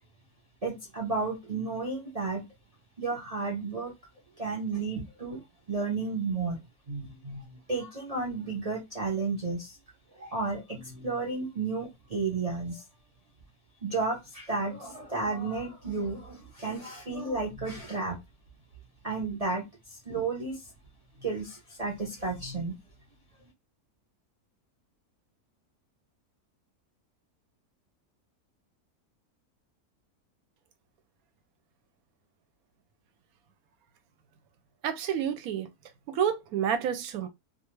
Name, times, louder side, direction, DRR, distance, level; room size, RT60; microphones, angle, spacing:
voice 1, 0.6-2.5 3.0-3.9 4.4-5.4 5.7-6.6 6.9-9.7 10.1-12.8 13.8-18.2 19.0-19.7 20.1-20.6 21.2-22.8, right 3 dB, 45° right, 0.5 m, -32 dB
voice 2, 34.8-35.7 36.1-37.3, right 8 dB, 75° right, 1.0 m, -29 dB
2.4 x 2.4 x 2.9 m
omnidirectional pair, 1.6 m